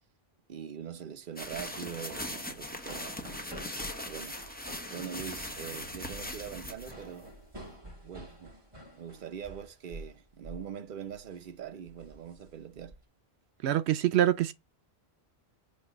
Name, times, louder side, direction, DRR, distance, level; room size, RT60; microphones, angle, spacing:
voice 1, 0.5-3.4 3.7-4.4 4.9-7.3 8.0-8.6 8.9-12.9, right 8 dB, 55° right, 0.9 m, -43 dB
sound 1, 1.4-7.7, left 1 dB, 10° left, 0.9 m, -40 dB
sound 2, 2.7-10.2 10.4-10.7 11.1-11.4 11.9-13.0, right 1 dB, 30° right, 1.9 m, -49 dB
voice 2, 13.6-14.5, right 12 dB, 80° right, 0.8 m, -25 dB
8.5 x 2.9 x 6.3 m
omnidirectional pair, 1.1 m